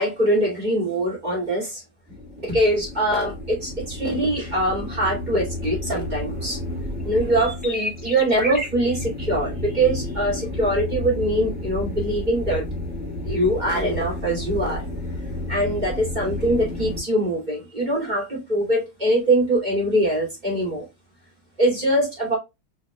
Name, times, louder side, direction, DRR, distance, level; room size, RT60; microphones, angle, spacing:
voice 1, 0.0-1.8 2.4-6.6 7.0-12.6 13.2-14.8 15.5-20.9 21.6-22.4, right 1 dB, 25° right, 2.8 m, -23 dB
sound 1, 2.1-17.0, left 1 dB, 5° right, 2.1 m, -31 dB
4.6 x 4.3 x 2.3 m
omnidirectional pair, 2.0 m